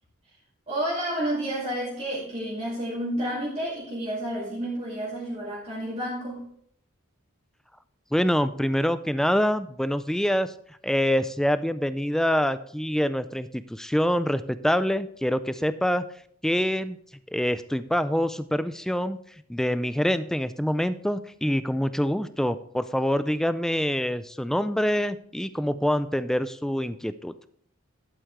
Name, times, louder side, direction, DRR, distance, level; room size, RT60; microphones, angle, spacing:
voice 1, 0.7-6.4, right 1 dB, 30° right, -6 dB, 2.4 m, -30 dB
voice 2, 8.1-16.0 16.4-17.0 17.3-19.2 19.5-27.3, equal, ahead, 13 dB, 0.3 m, -25 dB
11.5 x 8.1 x 3.2 m, 0.64 s
head